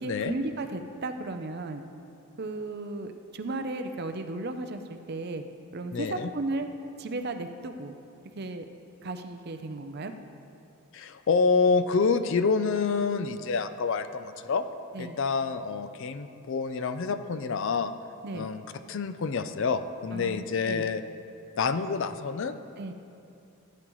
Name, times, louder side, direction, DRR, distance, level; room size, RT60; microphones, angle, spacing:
voice 1, 0.0-1.8 2.4-5.4 5.7-6.7 7.0-7.9 8.4-8.7 9.0-10.1 14.9-15.2 18.2-18.5 20.1-20.9 22.8-22.9, right 2 dB, 45° right, 7 dB, 0.5 m, -35 dB
voice 2, 5.9-6.3 10.9-14.6 15.0-17.9 18.3-21.0 21.6-22.5, left 5 dB, 55° left, 10 dB, 0.4 m, -27 dB
15.0 x 9.0 x 3.1 m, 2.6 s
head